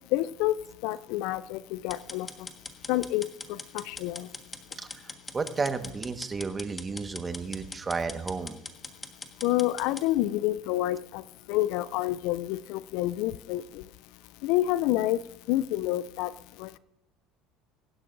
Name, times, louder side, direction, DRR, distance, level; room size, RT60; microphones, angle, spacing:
voice 1, 0.1-0.6 0.8-2.3 2.9-4.3 9.4-11.2 11.5-13.8 14.4-15.2 15.5-16.3 16.6-16.8, left 15 dB, 65° left, 19 dB, 0.4 m, -28 dB
sound 1, 1.9-10.1, left 3 dB, 20° left, 1.5 m, -42 dB
voice 2, 4.8-8.6, right 4 dB, 25° right, 8 dB, 1.4 m, -33 dB
23.5 x 12.0 x 2.6 m, 0.84 s
hypercardioid pair, 70°, 0 cm